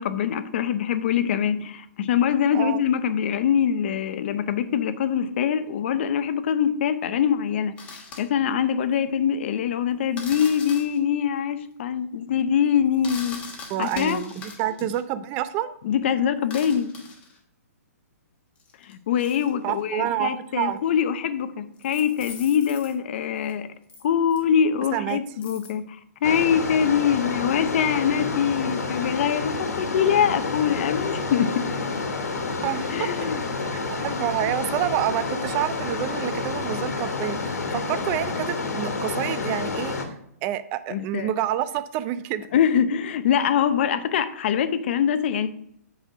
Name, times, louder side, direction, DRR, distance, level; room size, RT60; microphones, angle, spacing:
voice 1, 0.0-7.7 8.2-13.4 13.8-14.2 15.8-16.9 18.8-23.7 24.0-25.8 26.2-31.7 32.9-33.4 40.9-41.3 42.5-45.5, left 8 dB, 45° left, 11 dB, 0.8 m, -23 dB
sound 1, 7.8-8.2 10.2-11.0 12.9-15.0 16.4-17.4 18.6-19.8 20.8-20.9 21.8-22.9 23.4-23.5 23.9-24.0 24.3-24.4 25.4-25.7, left 4 dB, 15° left, 1.2 m, -41 dB
voice 2, 13.7-15.7 19.6-20.8 24.9-25.2 32.6-33.1 33.7-40.2 40.4-42.5, right 12 dB, 20° right, 13 dB, 0.4 m, -28 dB
sound 2, 26.2-40.0, left 4 dB, 85° left, 2.1 m, -29 dB
8.1 x 4.2 x 6.1 m, 0.72 s
hypercardioid pair, 160°, 9 cm